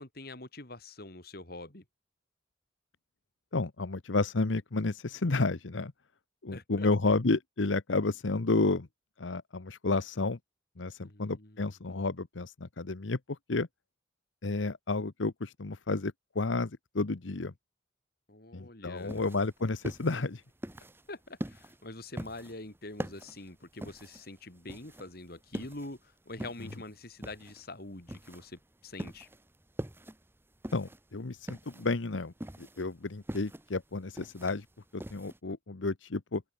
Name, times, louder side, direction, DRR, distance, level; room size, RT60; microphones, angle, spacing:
voice 1, 0.0-1.8 6.5-6.9 11.0-11.7 18.3-19.2 21.1-29.3, left 2 dB, 55° left, 3.5 m, -45 dB
voice 2, 3.5-5.9 6.4-8.9 9.2-10.4 10.8-13.7 14.4-17.5 18.5-20.4 30.7-34.6 34.9-36.4, left 3 dB, 90° left, 1.0 m, -31 dB
sound 1, 19.0-35.4, equal, 10° right, 1.3 m, -43 dB
open air
head